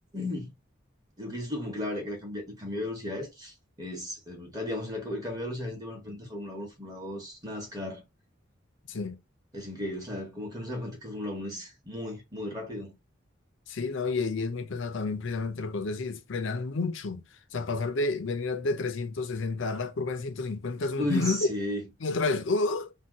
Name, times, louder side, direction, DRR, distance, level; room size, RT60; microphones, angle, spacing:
voice 1, 0.1-0.5 1.2-8.0 9.5-12.9 21.0-21.9, left 1 dB, 20° right, 0.9 m, -35 dB
voice 2, 13.7-17.2 17.5-21.5 22.0-22.9, left 3 dB, 75° left, 0.5 m, -30 dB
2.7 x 2.2 x 3.5 m
head